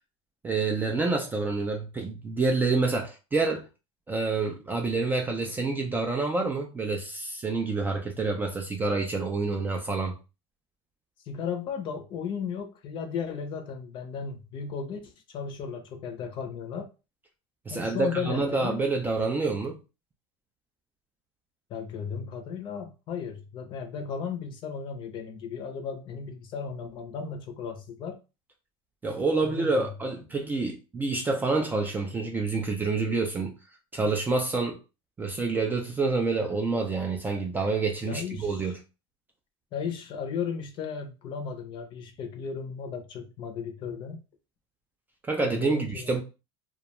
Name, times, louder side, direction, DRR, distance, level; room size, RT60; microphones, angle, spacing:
voice 1, 0.4-3.7 4.1-10.2 17.7-19.8 29.0-33.6 33.9-34.8 35.2-38.8 45.3-46.2, right 3 dB, 15° right, 0.3 m, -27 dB
voice 2, 11.3-16.9 17.7-18.8 21.7-28.2 29.4-29.9 38.0-38.7 39.7-44.2 45.4-46.2, left 6 dB, 35° left, 0.6 m, -35 dB
2.3 x 2.2 x 2.8 m
supercardioid pair, 135°, 14 cm